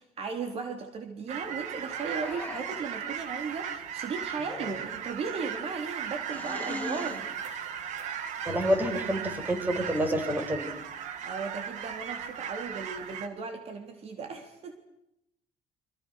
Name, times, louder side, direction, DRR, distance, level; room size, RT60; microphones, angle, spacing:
voice 1, 0.0-7.8 11.2-14.7, right 5 dB, 55° right, 6 dB, 3.6 m, -37 dB
sound 1, 1.3-13.3, right 8 dB, 70° right, 2.6 m, -37 dB
sound 2, 2.0-2.9 4.4-5.1 6.3-7.2 8.5-8.9 9.8-10.6, left 3 dB, 10° left, 4.9 m, -41 dB
voice 2, 8.4-10.7, equal, 15° right, 7 dB, 6.1 m, -28 dB
29.0 x 26.0 x 6.5 m, 0.81 s
cardioid pair, 95°, 13 cm